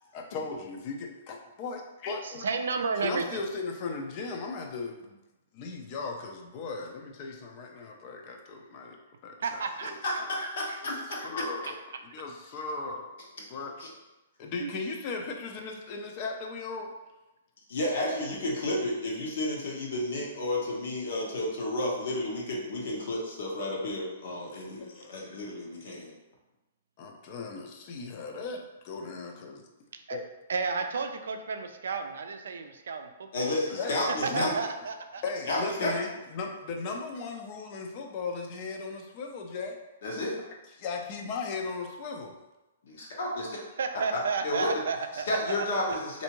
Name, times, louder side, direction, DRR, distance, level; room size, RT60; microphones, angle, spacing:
voice 1, 0.1-2.5 3.0-5.2 5.5-9.0 9.2-10.3 11.2-11.8 12.1-13.1 13.5-13.7 14.4-16.9 24.8-25.3 27.0-29.6 30.1-30.2 33.7-34.0 34.3-34.5 35.2-39.8 40.8-42.4, left 4 dB, 35° left, 2 dB, 0.5 m, -37 dB
voice 2, 2.2-3.4 9.4-9.9 10.7-10.8 14.6-14.7 30.1-30.2 30.5-33.9 34.2-35.2 43.8-45.6, right 5 dB, 80° right, 6 dB, 0.4 m, -32 dB
voice 3, 10.0-11.3 13.8-13.9 17.7-26.1 33.3-34.5 35.5-35.9 40.0-40.4 42.8-43.6 44.1-44.7 45.1-46.2, left 1 dB, 65° left, -2 dB, 1.0 m, -31 dB
3.4 x 2.6 x 3.0 m, 1.0 s
hypercardioid pair, 150°, 0 cm